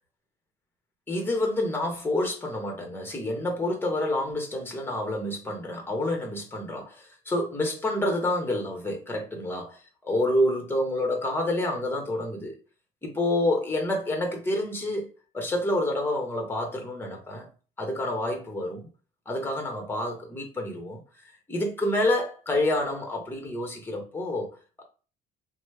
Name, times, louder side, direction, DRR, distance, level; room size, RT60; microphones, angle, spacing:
voice 1, 1.1-12.5 13.0-17.5 17.8-18.9 19.3-21.0 21.5-24.5, left 1 dB, 15° left, 1.0 m, -28 dB
3.0 x 2.2 x 3.2 m
cardioid pair, 110°, 17 cm